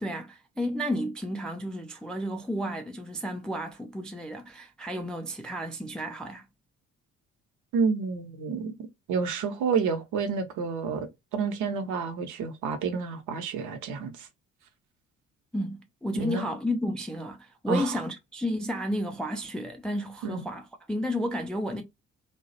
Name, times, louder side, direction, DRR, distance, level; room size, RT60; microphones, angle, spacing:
voice 1, 0.0-6.4 15.5-21.8, equal, ahead, 0.3 m, -32 dB
voice 2, 7.7-8.7 9.1-14.3 16.2-16.4 17.7-18.0 20.2-20.4, right 5 dB, 50° right, 0.7 m, -29 dB
2.3 x 2.0 x 2.7 m
figure-of-eight pair, 45°, 37 cm